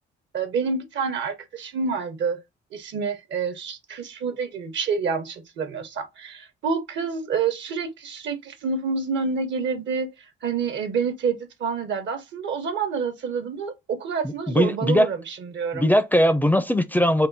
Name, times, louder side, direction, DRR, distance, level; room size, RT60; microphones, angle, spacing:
voice 1, 0.3-2.4 2.7-10.1 10.4-15.9, right 5 dB, 65° right, 1.0 m, -28 dB
voice 2, 14.2-15.1 15.7-17.3, equal, 10° left, 0.4 m, -20 dB
3.7 x 2.2 x 3.9 m
cardioid pair, 90°, 20 cm